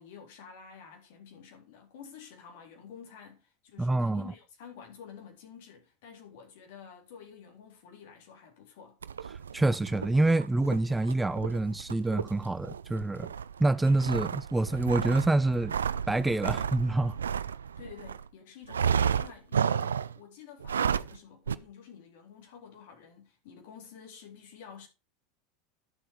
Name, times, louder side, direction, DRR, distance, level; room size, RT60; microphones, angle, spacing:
voice 1, 0.0-9.0 17.8-24.9, left 7 dB, 65° left, 3.8 m, -50 dB
voice 2, 3.8-4.3 9.5-13.3 13.6-15.7 16.1-17.2, right 2 dB, 10° right, 0.5 m, -26 dB
sound 1, 9.0-18.2 18.7-20.2 20.6-21.2 21.5-21.6, right 7 dB, 80° right, 0.4 m, -32 dB
11.0 x 7.3 x 4.7 m
hypercardioid pair, 85°, 0 cm